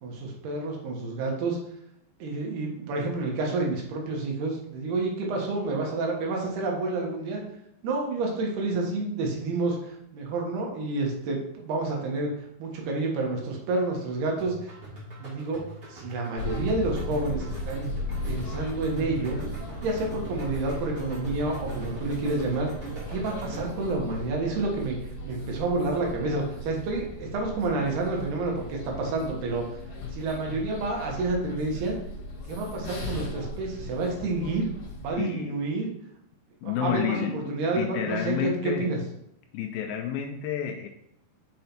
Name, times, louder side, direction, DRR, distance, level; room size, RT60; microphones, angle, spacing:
voice 1, 0.0-1.6 2.2-7.4 7.8-12.3 12.6-14.7 15.2-15.6 15.9-17.9 18.3-19.4 19.8-22.7 23.1-25.0 25.2-29.7 30.1-32.0 32.5-34.7 35.0-35.9 36.6-39.0, right 3 dB, 80° right, -1 dB, 3.5 m, -29 dB
sound 1, 14.4-23.9, right 3 dB, 25° right, 2.1 m, -42 dB
sound 2, 16.4-35.1, left 2 dB, 50° left, 1.9 m, -37 dB
voice 2, 35.2-35.6 36.6-38.9 39.5-40.9, left 8 dB, 80° left, 5 dB, 2.3 m, -30 dB
6.7 x 5.3 x 4.5 m, 0.77 s
omnidirectional pair, 4.6 m